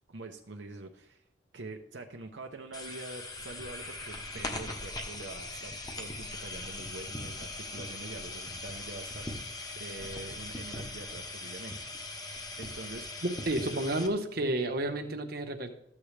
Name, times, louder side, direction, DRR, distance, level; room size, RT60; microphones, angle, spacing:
voice 1, 0.1-1.3 1.5-11.8 12.6-13.1, right 2 dB, 75° right, 3 dB, 0.9 m, -45 dB
sound 1, 2.7-14.1, left 2 dB, 20° left, 1.1 m, -40 dB
voice 2, 13.2-15.7, right 1 dB, 55° right, 4 dB, 1.1 m, -31 dB
14.0 x 8.5 x 3.3 m, 0.77 s
head